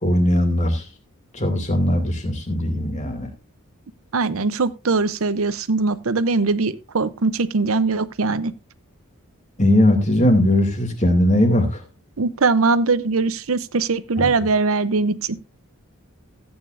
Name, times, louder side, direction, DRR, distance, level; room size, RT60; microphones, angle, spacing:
voice 1, 0.0-0.8 1.3-3.3 9.6-11.8 14.2-14.3, left 1 dB, 35° left, 2.5 m, -19 dB
voice 2, 4.1-8.5 12.2-15.4, right 4 dB, 65° right, 0.7 m, -21 dB
14.5 x 9.0 x 2.6 m
head